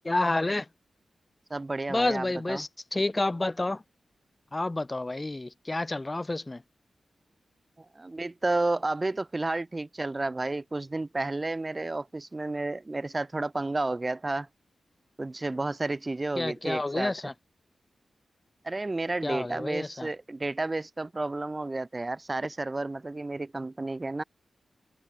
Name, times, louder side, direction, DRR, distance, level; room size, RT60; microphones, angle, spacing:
voice 1, 0.0-0.7 1.9-3.8 4.5-6.6 16.4-17.3 19.2-20.1, left 2 dB, 20° left, 1.4 m, -29 dB
voice 2, 1.5-2.6 7.8-14.5 15.2-17.1 18.6-24.2, right 2 dB, 25° right, 0.6 m, -31 dB
wide cardioid pair, 115°, 0 cm